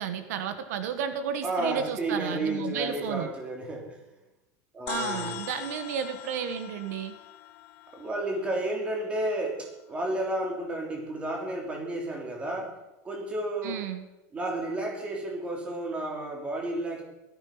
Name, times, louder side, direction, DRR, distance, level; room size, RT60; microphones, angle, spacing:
voice 1, 0.0-3.3 4.9-7.1 13.6-14.0, right 8 dB, 75° right, 9 dB, 1.7 m, -32 dB
voice 2, 1.4-4.0 4.7-5.4 7.9-12.8 13.0-13.8 14.3-17.0, right 1 dB, 15° right, 1 dB, 3.3 m, -32 dB
sound 1, 4.9-9.5, left 12 dB, 55° left, 1.4 m, -41 dB
16.5 x 14.0 x 6.0 m, 0.95 s
supercardioid pair, 180°, 9 cm